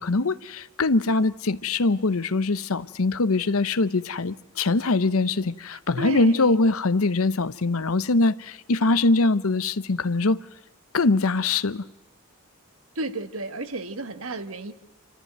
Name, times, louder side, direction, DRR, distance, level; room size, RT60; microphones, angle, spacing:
voice 1, 0.0-10.4 10.9-11.8, left 3 dB, 75° left, 0.8 m, -23 dB
voice 2, 6.0-6.5 12.9-14.7, right 2 dB, 70° right, 1.5 m, -32 dB
29.5 x 14.0 x 9.2 m
head